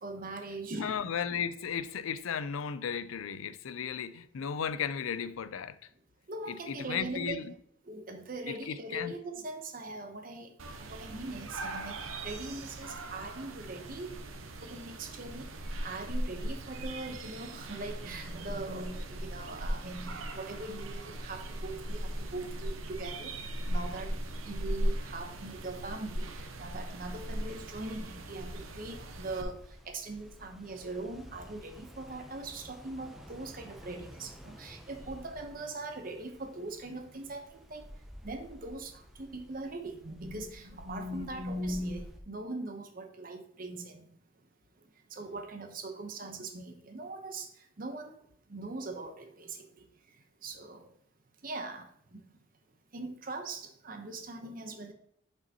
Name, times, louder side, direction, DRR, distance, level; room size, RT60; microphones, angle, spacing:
voice 1, 0.0-1.0 6.3-7.4 7.8-10.5 10.8-14.1 14.6-23.3 23.7-24.2 24.4-29.6 29.8-37.9 38.2-44.0 45.1-47.5 47.8-48.2 48.5-49.7 50.4-50.9 51.4-52.2 52.9-54.9, right 2 dB, 45° right, 0.9 m, -41 dB
voice 2, 0.8-5.8 6.5-7.5 8.5-9.1 41.1-41.2, left 7 dB, 90° left, 0.4 m, -35 dB
sound 1, 10.6-29.4, right 1 dB, 90° right, 0.8 m, -38 dB
sound 2, 23.4-42.2, equal, ahead, 0.7 m, -52 dB
6.7 x 5.6 x 2.9 m
head